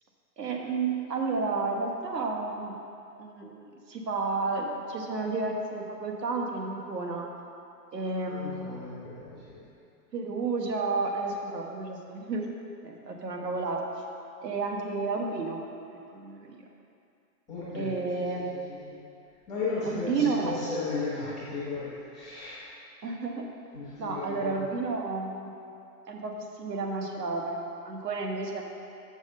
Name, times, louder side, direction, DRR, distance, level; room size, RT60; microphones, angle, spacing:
voice 1, 0.4-2.8 3.2-7.3 7.9-8.7 10.1-12.5 12.8-13.8 14.4-15.6 16.1-16.6 17.7-18.7 19.9-20.5 23.0-23.5 24.0-25.5 26.1-28.6, right 3 dB, 75° right, 1 dB, 1.6 m, -31 dB
voice 2, 8.2-9.6 17.5-19.0 19.5-22.7 23.7-24.7, left 3 dB, ahead, -15 dB, 0.4 m, -35 dB
6.5 x 6.4 x 6.6 m, 2.6 s
hypercardioid pair, 170°, 49 cm